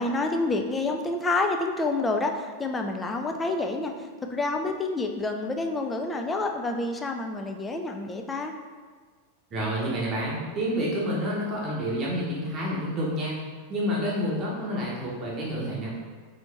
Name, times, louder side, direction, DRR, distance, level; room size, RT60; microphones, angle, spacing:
voice 1, 0.0-3.9 4.2-8.5, left 2 dB, 15° left, 4 dB, 0.4 m, -28 dB
voice 2, 9.5-13.4 13.7-15.9, equal, 30° right, -5 dB, 0.9 m, -29 dB
3.9 x 3.2 x 3.2 m, 1.5 s
figure-of-eight pair, 90°, 0 cm